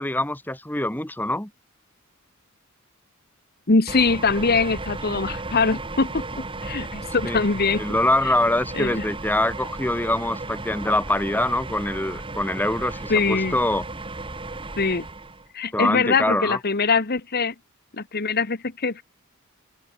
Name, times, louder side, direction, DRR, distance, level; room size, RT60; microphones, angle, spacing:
voice 1, 0.0-1.5 7.2-7.4 7.8-13.8 15.7-16.6, left 1 dB, 10° left, 1.5 m, -24 dB
voice 2, 3.7-7.8 8.7-9.0 13.1-13.6 14.8-15.0 15.5-17.5 17.9-19.0, left 4 dB, 45° left, 1.4 m, -23 dB
sound 1, 3.9-15.5, right 2 dB, 25° right, 2.1 m, -34 dB
open air
head